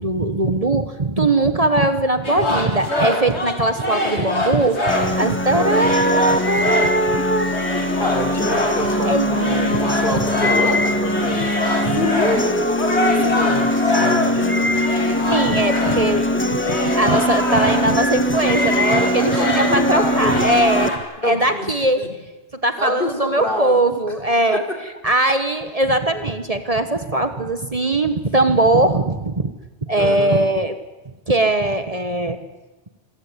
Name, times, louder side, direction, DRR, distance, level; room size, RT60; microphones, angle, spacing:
voice 1, 0.0-7.6 8.0-8.2 9.0-9.9 11.4-11.5 11.8-12.1 15.3-22.0 22.5-24.6 25.0-29.5 29.9-30.8 31.3-32.4, right 2 dB, 35° right, 9 dB, 1.3 m, -20 dB
sound 1, 2.2-5.2 5.6-18.0 18.3-21.0, left 2 dB, 80° left, 3.8 m, -25 dB
sound 2, 4.9-20.9, left 1 dB, 10° left, 1.2 m, -22 dB
voice 2, 5.5-5.9 8.0-11.5 11.9-14.8 19.2-20.6 21.2-21.7 22.0-22.1 22.8-23.8 24.5-24.6 30.0-30.4, left 2 dB, 50° left, 3 dB, 4.0 m, -26 dB
27.5 x 15.5 x 9.8 m, 1.1 s
omnidirectional pair, 1.1 m